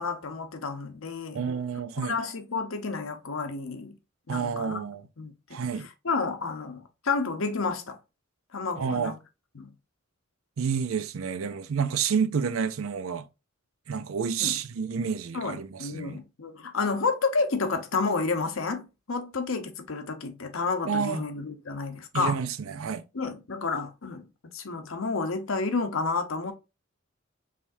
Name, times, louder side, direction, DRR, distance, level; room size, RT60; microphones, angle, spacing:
voice 1, 0.0-1.4 2.0-3.9 4.3-4.8 5.2-5.6 6.0-8.0 8.5-9.1 9.5-9.7 14.4-14.6 15.3-22.4 23.1-24.2 24.5-26.5, left 4 dB, 80° left, 0.8 m, -30 dB
voice 2, 1.3-2.2 4.3-5.1 5.5-5.9 8.8-9.1 10.6-13.3 13.9-16.2 20.9-21.2 22.1-23.0, right 6 dB, 85° right, 0.5 m, -29 dB
5.0 x 3.4 x 2.6 m
head